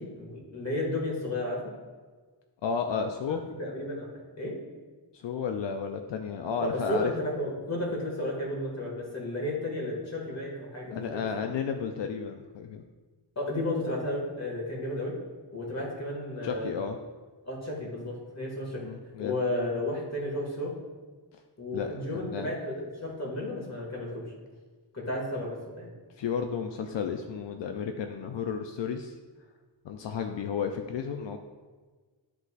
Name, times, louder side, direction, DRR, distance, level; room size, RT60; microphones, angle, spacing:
voice 1, 0.0-1.6 3.3-4.1 4.4-4.6 6.6-11.4 13.4-15.2 15.5-16.7 17.4-18.8 19.2-20.8 21.6-24.2 24.9-25.9, left 1 dB, 40° left, -2 dB, 2.0 m, -33 dB
voice 2, 2.6-3.4 5.1-7.1 10.9-12.8 16.4-17.0 18.8-19.4 21.7-22.5 26.2-29.1 29.8-31.4, left 6 dB, 85° left, 5 dB, 0.5 m, -32 dB
11.5 x 4.0 x 2.4 m, 1.4 s
wide cardioid pair, 105°, 42 cm